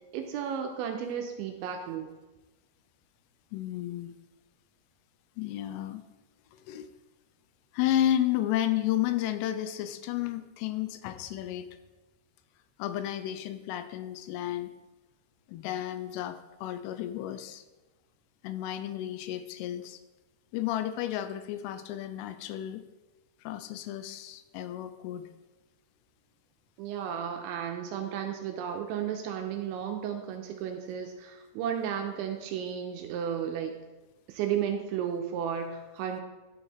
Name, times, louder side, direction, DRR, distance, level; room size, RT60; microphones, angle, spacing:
voice 1, 0.1-2.1 26.8-33.8 34.3-36.2, right 8 dB, 85° right, 4 dB, 2.8 m, -33 dB
voice 2, 3.5-4.1 5.4-6.0 6.7-6.9 7.7-11.7 12.8-14.7 15.5-17.6 18.4-20.0 20.5-22.8 23.4-25.3, left 12 dB, 85° left, 11 dB, 3.0 m, -32 dB
11.5 x 8.8 x 3.2 m, 1.1 s
omnidirectional pair, 5.8 m